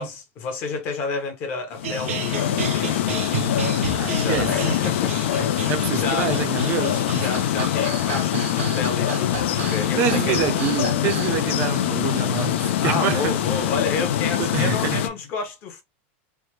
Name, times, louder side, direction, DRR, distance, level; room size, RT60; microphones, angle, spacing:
voice 1, 0.0-3.4 4.1-5.5 5.9-6.4 7.1-10.4 11.0-11.1 12.8-15.8, left 4 dB, 30° left, 0.7 m, -30 dB
sound 1, 1.7-15.1, left 11 dB, 65° left, 0.4 m, -24 dB
sound 2, 1.8-14.6, right 7 dB, 75° right, 0.7 m, -34 dB
voice 2, 4.0-4.5 5.4-7.3 10.0-13.4 14.4-15.0, right 8 dB, 25° right, 0.5 m, -27 dB
3.3 x 2.1 x 3.0 m
supercardioid pair, 175°, 7 cm